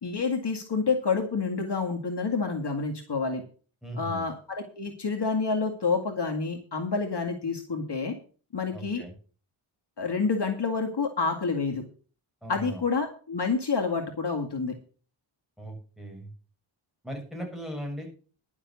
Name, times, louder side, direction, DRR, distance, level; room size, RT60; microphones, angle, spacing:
voice 1, 0.0-3.4 3.9-8.1 8.5-9.0 10.0-11.8 12.5-14.7, left 4 dB, 55° left, 3 dB, 2.1 m, -28 dB
voice 2, 3.8-4.3 8.7-9.1 12.4-12.8 15.6-16.3 17.0-18.2, equal, ahead, 1 dB, 6.5 m, -38 dB
11.0 x 7.3 x 7.0 m, 0.40 s
cardioid pair, 70°, 49 cm